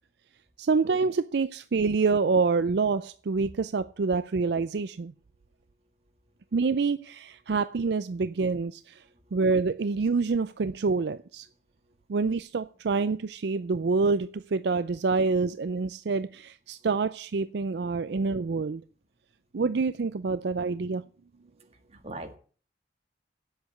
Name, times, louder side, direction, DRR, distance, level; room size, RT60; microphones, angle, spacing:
voice 1, 0.6-5.1 6.5-9.0 9.3-11.5 12.1-18.8 19.5-21.0, right 4 dB, 65° right, 0.4 m, -27 dB
voice 2, 9.0-9.4 11.8-12.0 16.8-16.9 21.5-22.4, right 2 dB, 35° right, 1.9 m, -44 dB
8.5 x 7.9 x 8.1 m
head